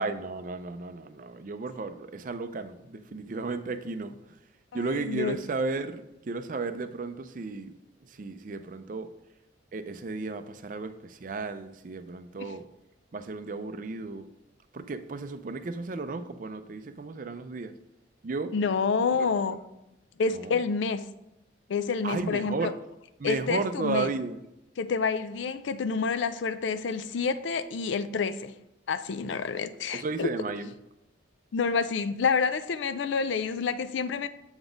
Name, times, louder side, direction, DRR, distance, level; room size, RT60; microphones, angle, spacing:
voice 1, 0.0-4.4 4.7-7.7 8.0-9.1 9.7-12.7 13.1-14.3 14.7-17.7 18.2-18.5 19.2-19.3 20.3-20.6 22.0-22.7 23.2-24.5 29.9-30.7, right 3 dB, 45° right, 0.4 m, -34 dB
voice 2, 4.7-5.4 12.4-12.5 18.5-19.6 20.2-21.1 21.7-22.7 23.2-24.1 24.8-28.5 28.9-30.3 31.5-34.3, left 5 dB, 70° left, 0.4 m, -28 dB
7.0 x 4.0 x 5.1 m
head